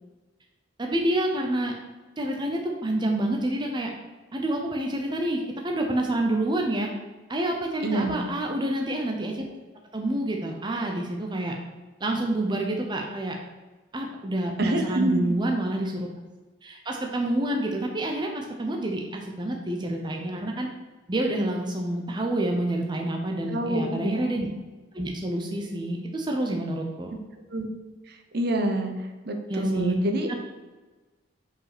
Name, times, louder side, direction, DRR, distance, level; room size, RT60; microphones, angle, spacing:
voice 1, 0.8-1.7 2.2-3.9 4.3-6.9 7.3-9.4 9.9-11.5 12.0-13.4 13.9-16.1 16.6-20.7 21.1-24.5 24.9-27.1 29.5-30.0, right 1 dB, 20° right, 1 dB, 0.7 m, -28 dB
voice 2, 7.8-8.3 14.6-15.3 23.5-24.3 27.5-27.7 28.3-28.9 29.3-30.4, right 1 dB, 50° right, 4 dB, 0.9 m, -26 dB
5.4 x 5.1 x 6.0 m, 1.2 s
head